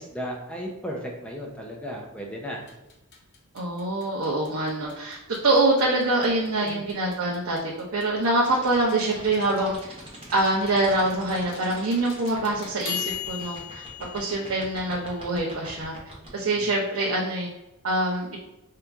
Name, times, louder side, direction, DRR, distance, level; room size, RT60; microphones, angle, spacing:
voice 1, 0.0-2.6 6.6-6.8 16.4-16.7, equal, 5° left, -1 dB, 0.6 m, -35 dB
sound 1, 2.7-15.3, left 10 dB, 55° left, 0.8 m, -41 dB
voice 2, 3.5-7.6 7.9-9.7 10.3-13.8 14.1-15.9 16.3-17.5 17.8-18.4, right 2 dB, 80° right, -4 dB, 0.9 m, -24 dB
sound 2, 8.4-16.3, right 1 dB, 25° right, 1.2 m, -43 dB
4.9 x 2.9 x 3.5 m, 0.93 s
head